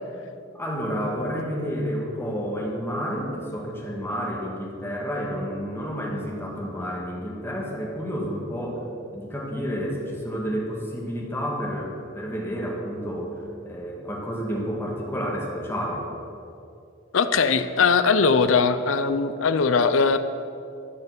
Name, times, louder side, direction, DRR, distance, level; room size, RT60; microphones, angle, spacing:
voice 1, 0.5-8.9 9.1-16.1, equal, 10° left, -2 dB, 1.6 m, -30 dB
voice 2, 17.1-20.2, left 5 dB, 85° left, 11 dB, 0.6 m, -20 dB
14.5 x 5.5 x 6.1 m, 2.6 s
head